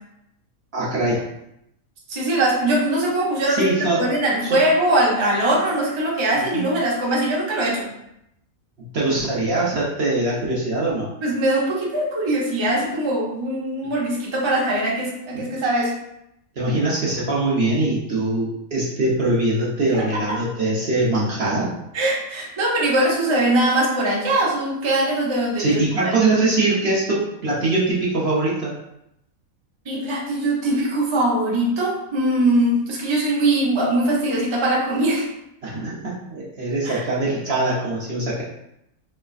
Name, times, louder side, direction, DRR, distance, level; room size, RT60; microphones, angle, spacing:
voice 1, 0.7-1.2 3.5-4.1 4.5-4.6 6.5-6.7 8.9-11.1 15.3-15.5 16.6-21.7 25.6-28.7 35.6-38.4, right 2 dB, 50° right, -5 dB, 0.9 m, -22 dB
voice 2, 2.1-7.9 11.2-16.0 20.1-20.4 21.9-26.1 29.8-35.3 36.8-37.0, right 1 dB, 25° right, -5 dB, 0.6 m, -21 dB
3.5 x 3.2 x 2.3 m, 0.81 s
omnidirectional pair, 1.5 m